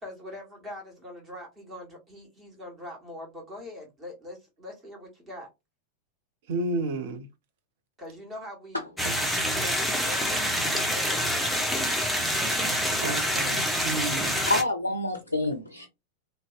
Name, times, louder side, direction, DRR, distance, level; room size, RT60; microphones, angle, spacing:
voice 1, 0.0-5.5 8.0-10.4 10.6-11.5, left 1 dB, 20° right, 1.2 m, -43 dB
voice 2, 6.5-7.3 13.0-14.4, right 2 dB, 50° right, 0.5 m, -31 dB
sound 1, 9.0-14.6, equal, ahead, 0.5 m, -26 dB
voice 3, 14.2-15.9, left 2 dB, 85° left, 0.4 m, -28 dB
2.6 x 2.0 x 2.4 m
figure-of-eight pair, 90°, 0 cm